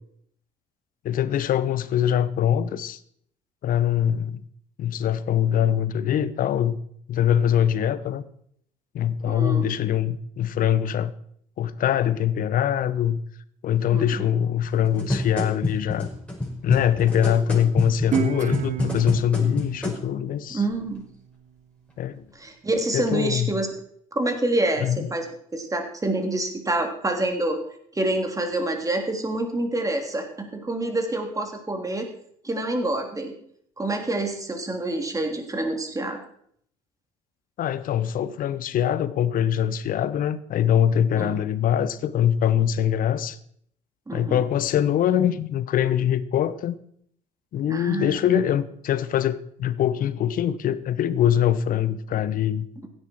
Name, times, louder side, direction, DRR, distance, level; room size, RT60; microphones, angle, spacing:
voice 1, 1.0-3.0 3.6-4.4 4.8-6.8 7.1-8.2 8.9-11.1 11.6-13.2 13.6-16.1 16.6-20.6 22.0-22.3 22.9-23.5 24.8-25.1 37.6-43.4 44.1-46.7 47.5-52.7, left 10 dB, 50° left, 16 dB, 1.0 m, -23 dB
voice 2, 9.2-9.7 13.9-14.0 20.5-21.0 22.4-23.7 24.1-27.6 27.9-32.1 32.4-33.3 33.8-36.2 41.1-41.3 44.1-44.4 47.6-48.2, right 2 dB, 20° right, 4 dB, 3.3 m, -27 dB
sound 1, 14.7-20.0 20.7-20.8, left 1 dB, 5° left, 5.4 m, -28 dB
Guitar, 18.1-21.3, right 8 dB, 45° right, 1.0 m, -31 dB
16.0 x 11.0 x 4.6 m, 0.65 s
hypercardioid pair, 55°, 18 cm